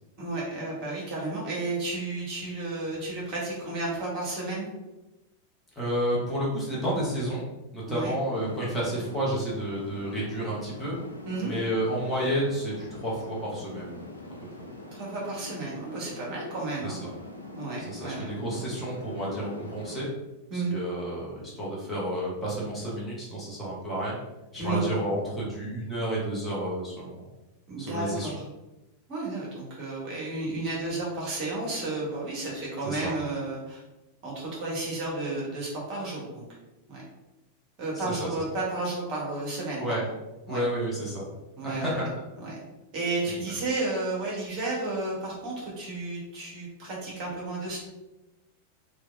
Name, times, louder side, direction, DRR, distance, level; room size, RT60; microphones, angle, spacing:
voice 1, 0.2-4.7 7.9-8.1 11.3-11.5 14.9-17.0 17.6-18.2 20.5-20.7 24.6-24.8 27.7-28.4 29.1-33.8 34.2-36.4 36.9-37.0 37.8-40.0 40.5-40.6 41.6-42.0 42.4-42.6 42.9-47.8, right 2 dB, 40° right, -4 dB, 1.0 m, -32 dB
voice 2, 5.7-7.4 7.7-10.9 11.4-14.1 16.8-17.1 17.8-20.1 20.5-24.1 24.5-27.3 27.8-28.3 32.8-33.1 37.9-38.3 39.8-40.0 40.5-41.2 41.6-42.1, right 1 dB, 10° left, -7 dB, 0.9 m, -31 dB
sound 1, 8.3-20.1, left 2 dB, 85° left, 0.3 m, -43 dB
3.1 x 2.3 x 2.4 m, 1.0 s
figure-of-eight pair, 90°, 0 cm